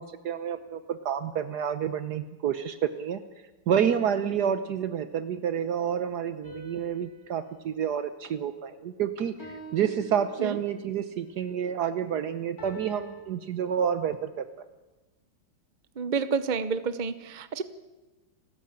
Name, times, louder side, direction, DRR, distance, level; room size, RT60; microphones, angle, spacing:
voice 1, 0.0-3.2 3.7-14.5, right 8 dB, 70° right, 10 dB, 1.4 m, -29 dB
sound 1, 6.4-8.8 9.4-10.9 12.6-13.2, right 3 dB, 55° left, 5.1 m, -47 dB
voice 2, 16.0-17.6, right 5 dB, 40° right, 12 dB, 0.7 m, -29 dB
29.5 x 13.5 x 8.8 m, 1.1 s
omnidirectional pair, 1.8 m